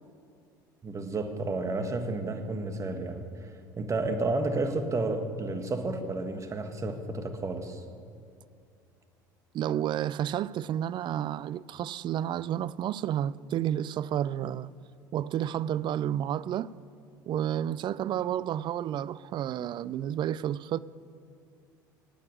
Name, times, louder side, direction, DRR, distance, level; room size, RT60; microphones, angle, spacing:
voice 1, 0.8-3.5 3.8-7.8, right 2 dB, 30° right, 1.6 m, -31 dB
voice 2, 9.5-14.7 15.1-16.7 17.3-20.8, right 11 dB, 45° right, 0.4 m, -31 dB
14.0 x 8.9 x 8.7 m
hypercardioid pair, 75°, 11 cm